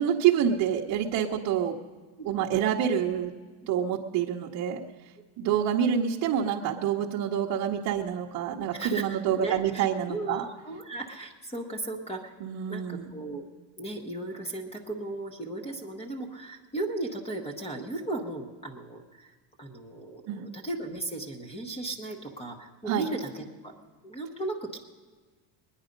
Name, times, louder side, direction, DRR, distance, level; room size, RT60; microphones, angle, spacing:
voice 1, 0.0-1.7 2.2-3.3 3.7-4.8 5.4-10.4 12.4-13.1 20.3-20.5 22.8-23.0, right 9 dB, 50° right, -3 dB, 0.9 m, -27 dB
voice 2, 2.2-2.5 8.7-12.3 12.7-13.5 13.8-19.3 19.6-23.7 24.0-24.8, right 2 dB, 15° left, 3 dB, 0.9 m, -36 dB
21.5 x 9.9 x 5.2 m, 1.4 s
cardioid pair, 180°, 45 cm